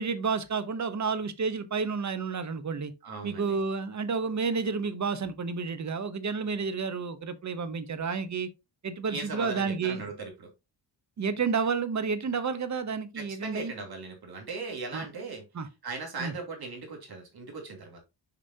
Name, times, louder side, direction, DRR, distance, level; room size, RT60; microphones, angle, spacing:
voice 1, 0.0-2.9 3.2-8.5 8.8-10.0 11.2-13.7 14.9-15.1 15.5-15.7 16.2-16.3, right 5 dB, 40° right, 0.9 m, -30 dB
voice 2, 3.0-3.6 9.1-10.5 13.2-15.4 15.8-18.0, right 3 dB, 55° right, 2.8 m, -38 dB
6.8 x 5.0 x 2.7 m
cardioid pair, 95°, 44 cm